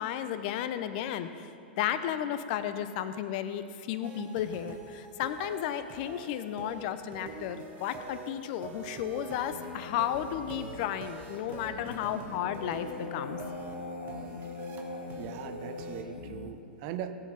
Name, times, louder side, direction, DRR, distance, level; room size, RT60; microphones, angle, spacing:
voice 1, 0.0-1.5 1.8-13.4, left 10 dB, 50° left, 11 dB, 0.8 m, -33 dB
sound 1, 4.0-16.0, right 4 dB, 35° right, 1.6 m, -46 dB
sound 2, 9.5-16.5, left 3 dB, 80° left, 1.5 m, -42 dB
voice 2, 15.2-17.1, right 10 dB, 50° right, 9 dB, 1.0 m, -40 dB
18.0 x 7.9 x 5.3 m, 2.5 s
hypercardioid pair, 100°, 6 cm